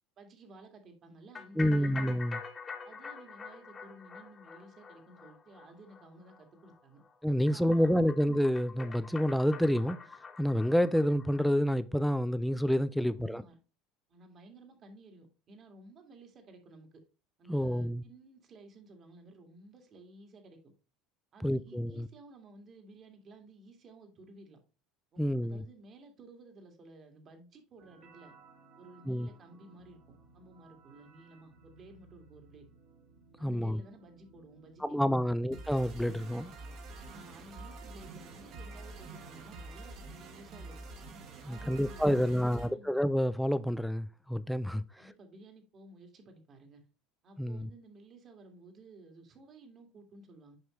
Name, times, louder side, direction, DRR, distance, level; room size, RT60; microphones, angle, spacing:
voice 1, 0.2-2.1 2.8-7.0 7.4-8.2 13.1-13.6 14.1-17.0 17.4-20.6 21.3-24.6 25.1-28.3 28.8-32.7 33.4-35.3 37.1-40.8 41.4-42.9 45.0-46.8 47.2-50.6, right 2 dB, 40° right, 2.1 m, -54 dB
sound 1, 1.3-11.4, left 5 dB, 25° left, 1.2 m, -46 dB
voice 2, 1.6-2.4 7.2-10.0 10.4-13.4 17.5-18.0 21.4-22.1 25.2-25.6 29.1-29.3 33.4-33.8 34.8-36.5 41.4-44.8 47.4-47.7, equal, ahead, 0.4 m, -28 dB
sound 2, 27.8-42.7, right 3 dB, 55° right, 2.0 m, -50 dB
7.8 x 5.4 x 3.1 m
supercardioid pair, 120°, 0 cm